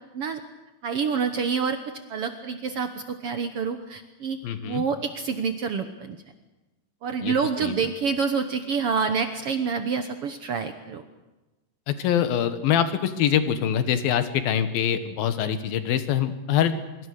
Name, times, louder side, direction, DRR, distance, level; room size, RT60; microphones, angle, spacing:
voice 1, 0.8-1.8 2.1-4.4 4.6-6.2 7.0-11.0, right 5 dB, 80° right, 8 dB, 1.3 m, -27 dB
voice 2, 4.4-4.8 7.2-7.3 7.6-7.7 11.9-16.8, left 9 dB, 80° left, 10 dB, 3.2 m, -24 dB
25.0 x 23.0 x 6.5 m, 1.1 s
omnidirectional pair, 4.2 m